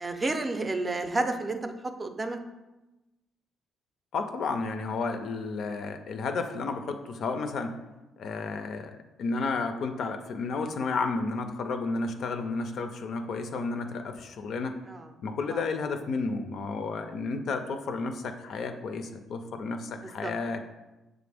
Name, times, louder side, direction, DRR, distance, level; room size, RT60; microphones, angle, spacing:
voice 1, 0.0-1.7 2.0-2.4 14.9-15.0 15.5-15.6 20.2-20.3, right 2 dB, 30° right, 6 dB, 0.4 m, -30 dB
voice 2, 4.1-7.7 8.2-14.7 15.2-20.7, left 4 dB, 65° left, 7 dB, 0.4 m, -32 dB
6.3 x 2.5 x 3.3 m, 1.0 s
cardioid pair, 90°, 0 cm